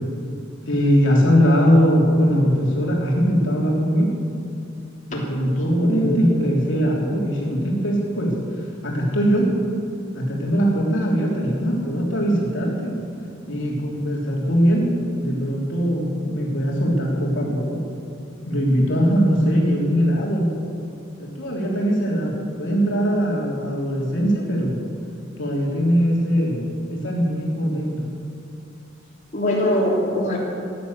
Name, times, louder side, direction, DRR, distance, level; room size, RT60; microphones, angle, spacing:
voice 1, 0.7-4.1 5.1-8.3 8.8-9.5 10.2-13.0 13.5-14.9 15.2-17.9 18.4-20.5 21.2-24.8 25.4-26.6 26.9-28.0, equal, 70° left, -3 dB, 3.3 m, -21 dB
voice 2, 5.8-6.3 29.3-30.4, equal, 40° left, -5 dB, 3.2 m, -21 dB
16.0 x 10.5 x 8.1 m, 2.5 s
head